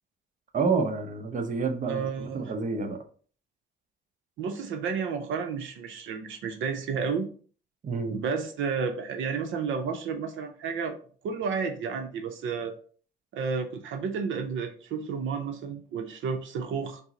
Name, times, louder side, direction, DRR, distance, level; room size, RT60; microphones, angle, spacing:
voice 1, 0.5-3.0 7.8-8.2, right 4 dB, 40° right, 5 dB, 0.7 m, -29 dB
voice 2, 1.9-2.5 4.4-7.3 8.1-11.0 11.2-12.8 13.3-17.0, right 5 dB, 75° right, 6 dB, 0.6 m, -31 dB
5.4 x 2.0 x 3.7 m, 0.43 s
cardioid pair, 90°, 20 cm